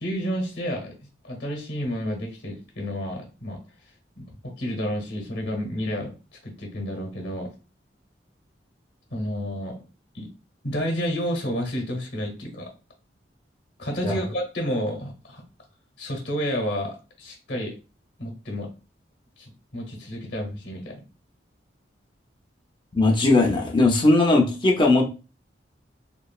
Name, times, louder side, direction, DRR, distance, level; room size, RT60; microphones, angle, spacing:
voice 1, 0.0-1.0 1.2-3.6 4.2-6.1 6.4-7.5 9.1-9.8 10.1-10.3 10.6-12.7 13.8-15.4 16.0-17.8 18.2-18.7 19.4-21.0, equal, 70° left, 0.9 m, -30 dB
voice 2, 22.9-25.1, left 2 dB, 25° left, 0.5 m, -19 dB
3.0 x 2.4 x 2.3 m
head